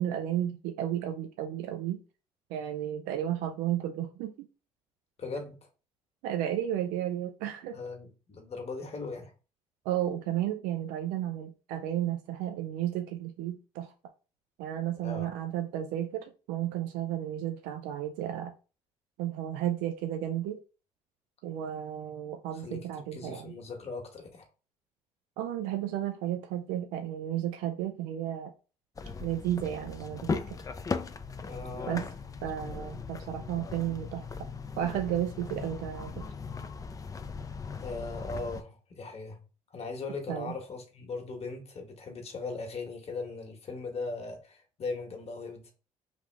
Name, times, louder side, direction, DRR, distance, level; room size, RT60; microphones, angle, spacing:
voice 1, 0.0-2.0 2.5-4.5 6.2-7.8 9.9-13.9 14.6-18.5 19.2-20.6 21.4-23.5 25.4-28.5 29.2-30.6 31.9-32.0 32.4-34.3 34.8-36.2 40.3-40.5, right 11 dB, 80° right, 0.4 m, -33 dB
voice 2, 5.2-5.7 7.7-9.3 15.0-15.3 22.0-22.2 22.5-24.5 31.4-32.1 37.7-39.4 39.7-45.7, left 3 dB, 45° left, 1.2 m, -39 dB
sound 1, 29.0-38.6, left 4 dB, 25° left, 0.4 m, -38 dB
3.4 x 2.4 x 3.3 m
hypercardioid pair, 60°, 14 cm